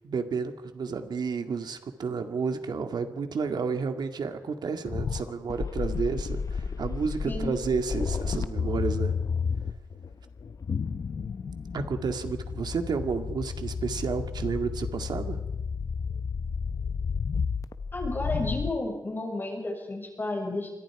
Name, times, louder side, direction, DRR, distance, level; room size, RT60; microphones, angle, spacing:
voice 1, 0.0-9.1 11.7-15.4, right 5 dB, 80° right, 7 dB, 2.2 m, -31 dB
sound 1, 4.8-18.7, left 5 dB, 55° left, 0.9 m, -32 dB
voice 2, 7.2-7.6 17.9-20.7, left 2 dB, 30° left, 1 dB, 6.3 m, -32 dB
28.0 x 25.0 x 4.9 m, 1.1 s
wide cardioid pair, 170°, 7 cm